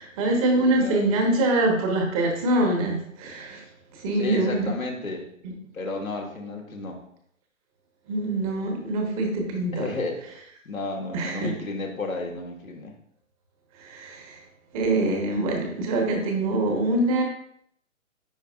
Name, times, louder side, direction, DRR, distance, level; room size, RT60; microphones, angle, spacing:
voice 1, 0.0-3.6 3.9-4.7 5.4-5.5 8.1-9.9 11.1-11.5 13.8-14.4 14.7-17.2, right 2 dB, 25° right, 2 dB, 1.2 m, -24 dB
voice 2, 0.5-1.0 4.2-5.3 5.7-7.0 9.7-10.2 10.6-12.9, left 3 dB, 85° left, 0 dB, 1.6 m, -32 dB
9.7 x 4.6 x 2.5 m, 0.69 s
figure-of-eight pair, 135°, 40 cm